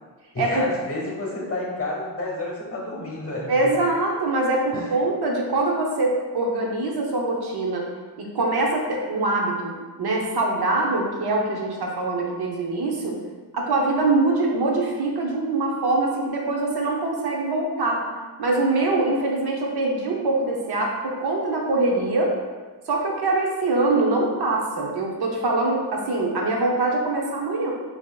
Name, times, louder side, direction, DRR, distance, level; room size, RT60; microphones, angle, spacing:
voice 1, 0.3-3.7 4.7-4.8, left 2 dB, 35° left, -3 dB, 0.8 m, -30 dB
voice 2, 3.5-7.9 8.2-13.2 13.5-18.0 18.4-22.3 22.9-27.7, right 2 dB, 70° right, -1 dB, 0.7 m, -23 dB
4.7 x 2.8 x 2.3 m, 1.4 s
wide cardioid pair, 160°, 41 cm